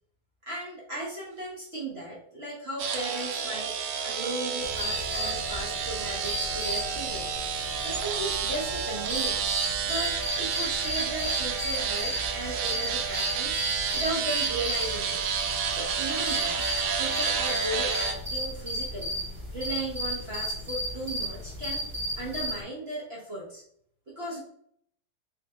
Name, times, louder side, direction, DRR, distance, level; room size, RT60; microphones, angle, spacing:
voice 1, 0.4-7.3 7.8-9.5 9.8-13.6 13.9-15.2 15.7-16.7 17.0-19.2 19.5-21.8 22.2-23.6 24.1-24.4, right 1 dB, 60° right, -6 dB, 0.6 m, -36 dB
sound 1, 2.8-18.1, right 6 dB, 80° right, 1.4 m, -30 dB
sound 2, 4.6-22.6, equal, 35° right, 1.6 m, -34 dB
3.5 x 3.2 x 3.3 m, 0.67 s
omnidirectional pair, 2.4 m